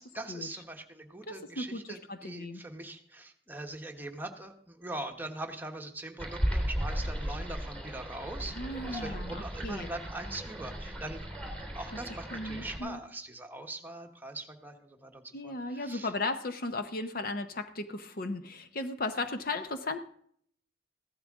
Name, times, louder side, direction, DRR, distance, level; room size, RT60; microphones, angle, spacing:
voice 1, 0.0-11.3 11.7-16.1, right 2 dB, 10° right, 3 dB, 1.2 m, -42 dB
voice 2, 1.3-2.6 8.5-9.9 12.3-13.0 15.3-20.0, left 2 dB, 50° left, 9 dB, 0.8 m, -36 dB
sound 1, 6.2-12.8, equal, 10° left, 3.1 m, -36 dB
15.5 x 12.0 x 3.6 m, 0.62 s
head